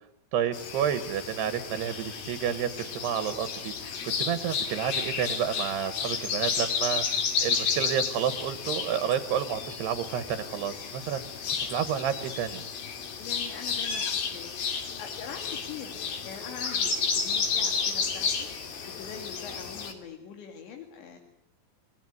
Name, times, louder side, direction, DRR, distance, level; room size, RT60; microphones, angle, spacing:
voice 1, 0.3-3.9 4.2-11.3 11.7-12.7, right 9 dB, 70° right, 11 dB, 3.2 m, -30 dB
Spring in the South, 0.5-19.9, left 6 dB, 55° left, 4.3 m, -32 dB
voice 2, 13.2-14.0 14.3-15.9 16.2-21.2, left 7 dB, 75° left, 4 dB, 4.6 m, -43 dB
28.5 x 19.5 x 9.5 m, 0.72 s
omnidirectional pair, 5.2 m